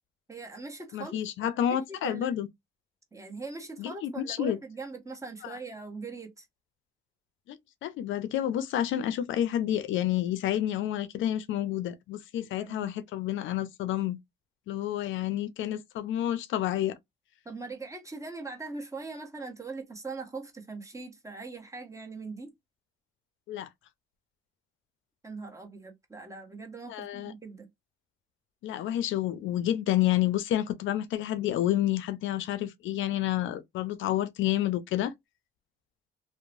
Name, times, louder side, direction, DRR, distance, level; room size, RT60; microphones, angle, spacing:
voice 1, 0.3-2.3 3.1-6.5 12.4-12.9 17.4-22.5 25.2-27.7, right 3 dB, 15° right, 0.9 m, -41 dB
voice 2, 0.9-2.5 3.8-4.6 5.4-5.6 7.5-14.2 14.7-17.0 23.5-23.7 26.9-27.3 28.6-35.1, left 12 dB, 75° left, 0.4 m, -29 dB
2.9 x 2.0 x 2.5 m
cardioid pair, 90°, 20 cm